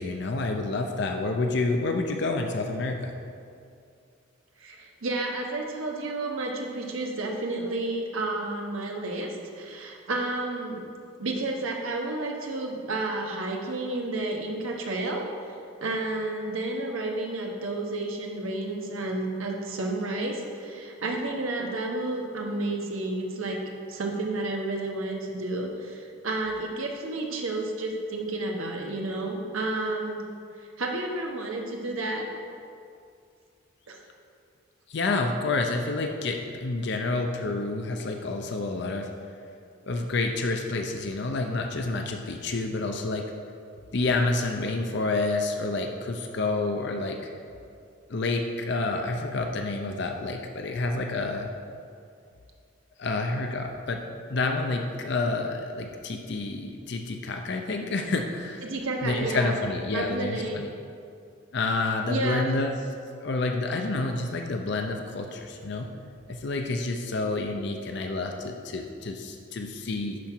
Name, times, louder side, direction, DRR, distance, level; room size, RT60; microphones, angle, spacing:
voice 1, 0.0-3.1 34.9-39.1 39.9-43.3 43.9-47.2 48.1-51.5 53.0-54.0 54.3-58.7 59.0-60.6 61.5-62.8 63.2-65.9 66.3-70.2, left 3 dB, 55° left, 4 dB, 0.5 m, -29 dB
voice 2, 4.6-10.8 11.2-15.2 15.8-23.6 23.9-30.2 30.8-32.3 33.9-34.0 58.6-59.5 59.9-60.6 62.1-62.7, right 2 dB, 80° right, 1 dB, 1.1 m, -31 dB
11.0 x 4.5 x 4.9 m, 2.4 s
head